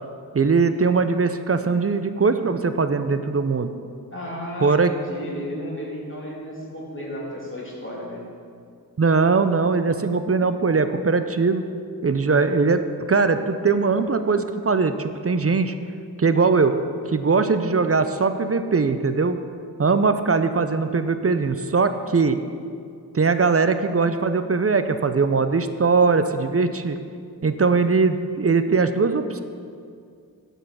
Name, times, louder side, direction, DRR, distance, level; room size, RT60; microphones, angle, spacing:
voice 1, 0.3-3.7 4.6-4.9 9.0-11.6 12.0-15.8 16.2-16.8 17.1-19.4 19.8-22.4 23.1-27.0 27.4-29.4, right 4 dB, 40° right, 10 dB, 0.5 m, -20 dB
voice 2, 4.1-8.2, equal, 35° left, -4 dB, 2.7 m, -33 dB
11.5 x 5.4 x 6.2 m, 2.3 s
wide cardioid pair, 65°, 37 cm